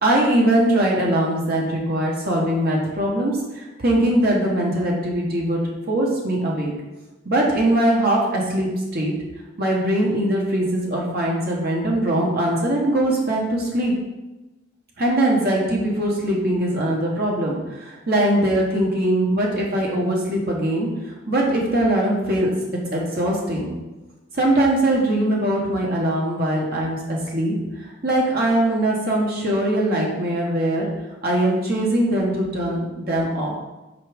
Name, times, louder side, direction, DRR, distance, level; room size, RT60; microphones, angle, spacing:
voice 1, 0.0-5.6 5.9-6.7 7.2-9.1 9.6-13.9 15.0-22.5 22.9-23.7 24.3-30.9 31.2-33.5, right 1 dB, 55° right, -3 dB, 1.6 m, -21 dB
5.7 x 4.9 x 5.3 m, 1.1 s
head